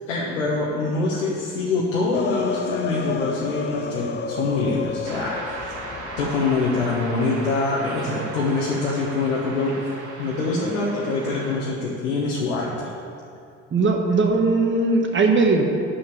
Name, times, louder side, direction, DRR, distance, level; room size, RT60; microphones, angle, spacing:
voice 1, 0.1-5.6 6.2-9.9 10.2-12.9, left 3 dB, 75° left, -5 dB, 1.3 m, -24 dB
sound 1, 2.1-7.0, left 6 dB, 30° left, 0.7 m, -31 dB
sound 2, 5.0-11.5, right 3 dB, 50° right, 2.1 m, -37 dB
voice 2, 13.7-15.6, right 3 dB, 30° right, 3 dB, 1.5 m, -19 dB
9.2 x 7.0 x 6.8 m, 2.4 s
figure-of-eight pair, 55°, 38 cm